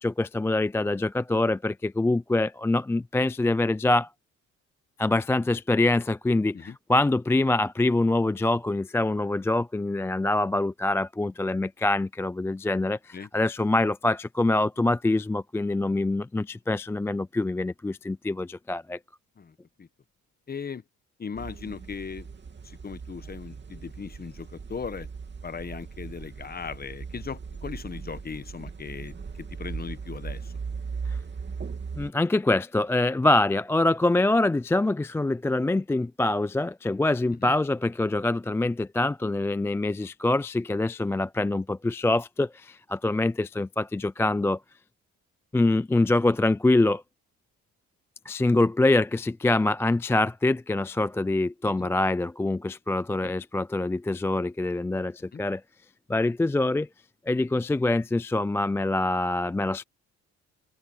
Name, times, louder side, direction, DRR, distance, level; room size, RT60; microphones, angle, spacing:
voice 1, 0.0-4.1 5.0-19.0 31.1-31.2 31.9-44.6 45.5-47.0 48.3-55.6 56.1-56.9 57.3-59.8, left 2 dB, 10° left, 0.3 m, -25 dB
voice 2, 19.4-19.9 20.5-20.8 21.2-22.3 22.6-25.1 25.4-30.5 37.4-37.5 51.8-51.9 53.2-53.3 55.3-55.4, left 6 dB, 30° left, 1.1 m, -38 dB
sound 1, 21.3-32.1, right 5 dB, 35° right, 2.8 m, -38 dB
open air
cardioid pair, 90°, 30 cm